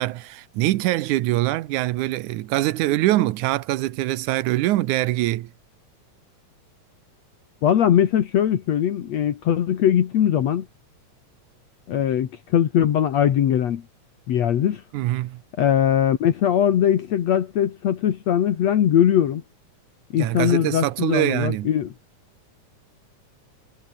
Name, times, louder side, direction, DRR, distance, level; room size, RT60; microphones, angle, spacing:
voice 1, 0.0-5.5 14.9-15.4 20.2-21.7, right 16 dB, 90° right, 2.3 m, -23 dB
voice 2, 7.6-10.7 11.9-13.8 14.3-14.8 15.6-19.4 20.1-21.9, left 10 dB, 65° left, 2.7 m, -20 dB
omnidirectional pair, 3.4 m